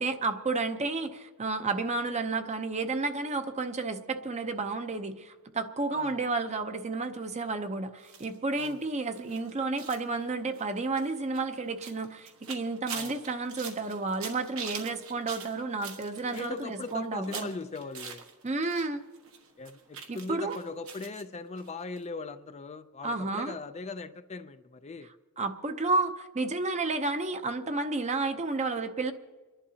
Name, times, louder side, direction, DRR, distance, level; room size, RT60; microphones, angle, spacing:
voice 1, 0.0-17.5 18.4-19.0 20.1-20.6 23.0-23.5 25.4-29.1, right 3 dB, 30° right, 8 dB, 0.7 m, -31 dB
sound 1, 8.0-18.9 19.1-21.2 21.6-21.7 22.0-22.1, right 6 dB, 70° right, 1.4 m, -44 dB
voice 2, 16.3-18.2 19.6-25.1, left 4 dB, 30° left, 10 dB, 0.4 m, -40 dB
29.0 x 11.0 x 2.8 m, 1.4 s
head